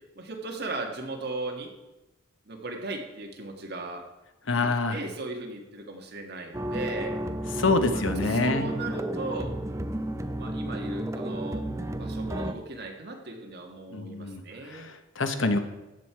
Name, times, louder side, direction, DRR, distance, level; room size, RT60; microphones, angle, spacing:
voice 1, 0.1-1.7 2.5-4.0 4.5-7.2 7.9-9.5 10.4-11.7 12.0-14.9, right 2 dB, 60° right, 2 dB, 1.8 m, -37 dB
voice 2, 4.5-5.0 7.6-8.7 13.9-15.6, left 3 dB, 90° left, 8 dB, 1.1 m, -26 dB
sound 1, 6.5-12.5, right 1 dB, 15° right, 0.5 m, -32 dB
14.0 x 8.4 x 4.7 m, 1.0 s
head